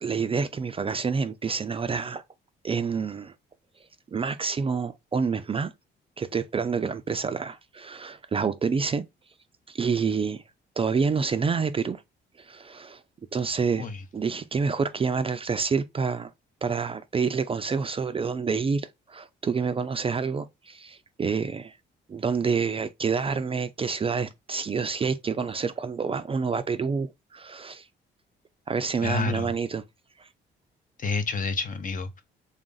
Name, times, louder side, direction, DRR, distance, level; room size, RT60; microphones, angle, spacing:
voice 1, 0.0-2.2 2.6-3.3 4.1-5.7 6.2-9.1 9.7-10.4 10.8-12.0 12.4-13.0 13.3-13.9 14.1-16.3 16.6-21.8 22.1-27.9 28.7-29.8 30.2-30.3, right 5 dB, 30° right, 0.4 m, -28 dB
voice 2, 29.0-29.5 31.0-32.2, left 4 dB, 40° left, 0.7 m, -29 dB
3.5 x 2.5 x 3.9 m
cardioid pair, 90°, 20 cm